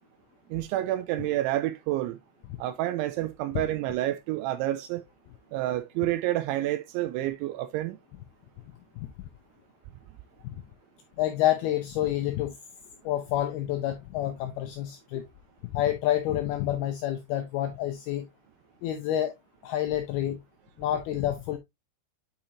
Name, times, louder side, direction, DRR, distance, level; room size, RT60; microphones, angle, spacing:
voice 1, 0.5-2.2 2.6-5.0 5.5-8.0, right 14 dB, 85° right, 2.9 m, -29 dB
voice 2, 11.2-12.6 13.0-15.2 15.7-18.3 18.8-19.3 19.6-20.4 20.8-21.6, left 12 dB, 85° left, 2.2 m, -28 dB
8.9 x 4.9 x 2.7 m
omnidirectional pair, 5.5 m